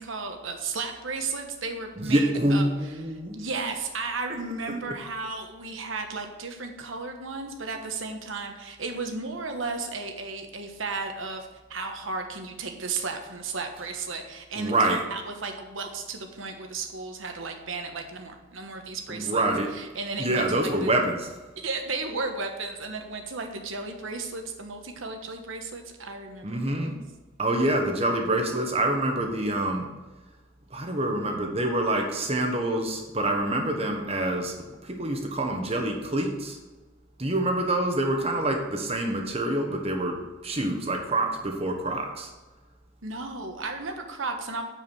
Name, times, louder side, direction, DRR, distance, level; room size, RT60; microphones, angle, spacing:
voice 1, 0.0-19.4 19.7-20.9 21.6-27.0 43.0-44.6, right 4 dB, 75° right, 4 dB, 1.2 m, -34 dB
voice 2, 2.0-3.4 14.6-15.0 19.1-19.7 20.2-21.3 26.4-27.0 27.4-29.9 30.7-34.5 34.8-36.6 37.2-40.2 40.4-42.3, right 1 dB, 30° right, 3 dB, 1.2 m, -26 dB
9.0 x 4.9 x 6.3 m, 1.2 s
head